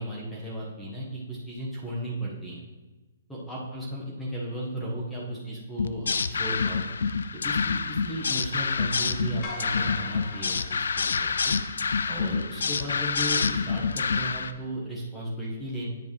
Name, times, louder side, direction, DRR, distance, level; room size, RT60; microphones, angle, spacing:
voice 1, 0.0-2.6 3.3-6.9 7.4-11.5 12.1-15.9, right 1 dB, 5° left, -5 dB, 1.3 m, -35 dB
sound 1, 5.8-14.5, left 5 dB, 80° left, 0.4 m, -27 dB
sound 2, 9.4-11.8, left 3 dB, 40° left, 1.2 m, -42 dB
8.9 x 5.1 x 3.2 m, 1.2 s
hypercardioid pair, 140°, 0 cm